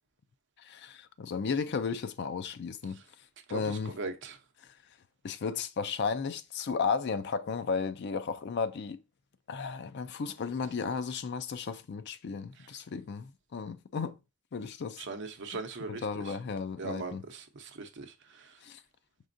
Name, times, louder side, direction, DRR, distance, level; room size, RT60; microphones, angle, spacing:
voice 1, 0.6-3.0 3.5-4.0 4.6-4.7 5.2-9.0 9.5-14.2 14.5-15.1 15.8-17.2 18.6-18.8, left 5 dB, 50° left, 0.4 m, -34 dB
voice 2, 3.5-4.4 15.0-16.4 16.8-18.5, right 3 dB, 55° right, 0.7 m, -40 dB
5.1 x 3.7 x 2.6 m
head